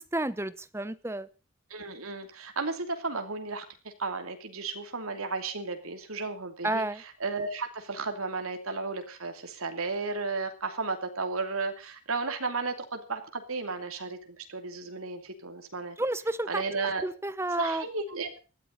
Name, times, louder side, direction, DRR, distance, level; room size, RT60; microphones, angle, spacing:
voice 1, 0.1-1.3 6.6-7.0 16.0-16.6 17.0-17.8, right 1 dB, 10° right, 15 dB, 0.8 m, -30 dB
voice 2, 1.7-6.8 7.2-16.0 16.5-17.0 17.6-18.4, right 3 dB, 85° right, 6 dB, 2.8 m, -34 dB
19.5 x 14.0 x 4.0 m, 0.35 s
head